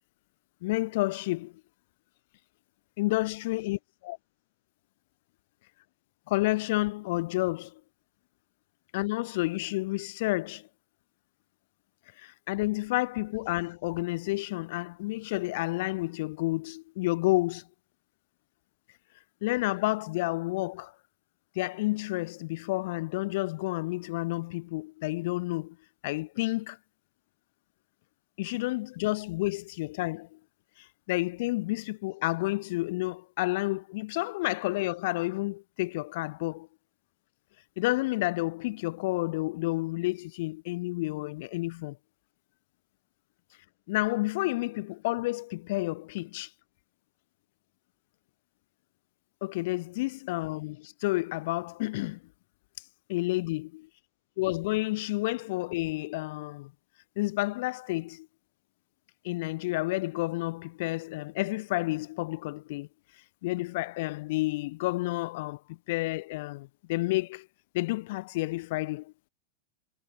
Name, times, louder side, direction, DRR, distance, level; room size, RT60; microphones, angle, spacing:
voice 1, 0.6-1.5 3.0-4.2 6.3-7.8 8.9-10.7 12.1-17.7 19.4-21.0 21.5-25.8 26.0-26.8 28.4-30.4 30.8-36.7 37.8-42.0 43.9-46.5 49.4-52.2 52.8-53.9 54.4-56.7 57.2-58.3 59.2-67.5 67.7-69.1, left 20 dB, 50° left, 1.0 m, -30 dB
figure-of-eight pair, 90°, 0 cm